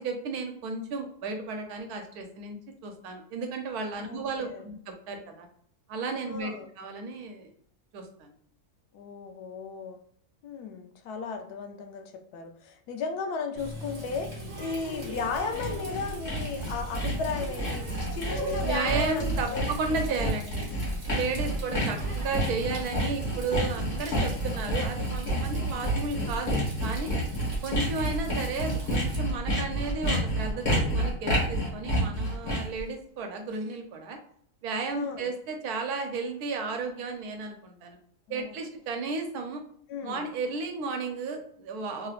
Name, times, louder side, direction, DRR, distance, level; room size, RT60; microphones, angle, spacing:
voice 1, 0.0-2.6 2.8-4.8 5.1-5.5 5.9-6.5 6.8-7.5 7.9-8.3 18.6-20.6 21.1-27.2 27.6-34.2 34.6-38.0 38.3-39.6 40.0-42.1, right 4 dB, 80° right, 4 dB, 1.1 m, -33 dB
voice 2, 4.0-4.6 6.3-6.7 8.9-10.0 10.4-17.9 18.1-19.7 20.1-20.2 21.4-21.6 25.5-25.9 28.1-28.2 34.9-35.3 38.3-38.6 39.9-40.3, left 5 dB, 85° left, 5 dB, 1.1 m, -35 dB
Water tap faucet, 13.6-29.2, right 1 dB, 45° right, 1.1 m, -40 dB
Sawing, 15.0-32.8, right 1 dB, 45° left, 1.4 m, -29 dB
3.2 x 3.0 x 2.4 m, 0.64 s
omnidirectional pair, 1.6 m